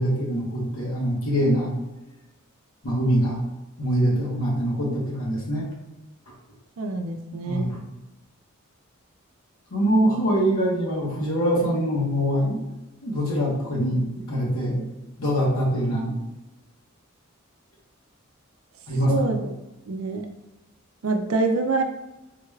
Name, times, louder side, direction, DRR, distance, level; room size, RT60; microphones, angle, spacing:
voice 1, 0.0-1.7 2.8-3.4 3.8-5.7 7.4-7.8 9.7-12.6 13.0-14.8 15.2-16.1 18.9-19.3, equal, 80° left, -4 dB, 1.1 m, -23 dB
voice 2, 6.8-7.7 19.1-19.4 19.9-20.2 21.0-21.8, right 3 dB, 80° right, 5 dB, 0.4 m, -25 dB
4.0 x 2.3 x 3.2 m, 1.0 s
head